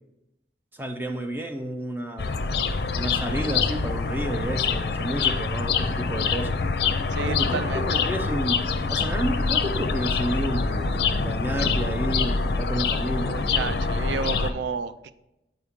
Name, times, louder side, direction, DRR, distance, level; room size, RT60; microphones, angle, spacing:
voice 1, 0.7-2.5 2.9-6.6 7.3-8.6 8.9-13.4, right 1 dB, 10° right, 5 dB, 0.3 m, -31 dB
sound 1, 2.2-14.5, left 4 dB, 60° left, 0.5 m, -25 dB
voice 2, 7.1-7.9 13.3-15.1, right 5 dB, 80° right, 12 dB, 0.4 m, -31 dB
8.2 x 4.6 x 3.5 m, 0.92 s
head